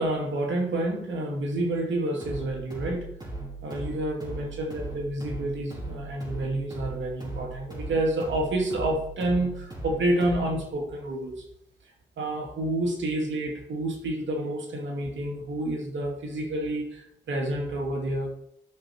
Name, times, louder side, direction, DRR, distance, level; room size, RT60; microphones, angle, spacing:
voice 1, 0.0-3.1 3.6-11.5 12.2-18.3, right 1 dB, 80° right, 1 dB, 2.5 m, -29 dB
sound 1, 2.2-10.7, right 2 dB, 20° right, 4.4 m, -38 dB
12.0 x 6.2 x 4.5 m, 0.74 s
cardioid pair, 55°, 19 cm